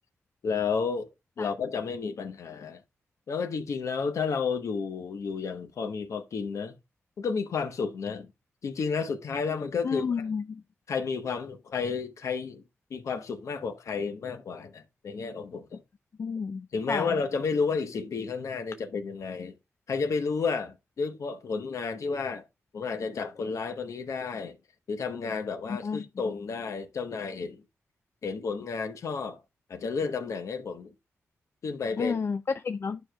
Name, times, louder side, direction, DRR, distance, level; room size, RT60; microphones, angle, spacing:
voice 1, 0.4-1.1 1.4-2.8 3.3-6.7 7.2-8.3 8.6-10.2 10.9-12.6 12.9-15.8 16.7-19.5 19.9-22.4 22.7-24.6 24.9-27.6 28.2-29.4 29.7-30.9 31.6-32.1, left 5 dB, 75° left, 0.9 m, -31 dB
voice 2, 9.8-10.6 16.2-17.1 25.7-26.4 32.0-33.0, left 5 dB, 50° left, 0.3 m, -31 dB
11.0 x 4.8 x 2.2 m
cardioid pair, 55°, 5 cm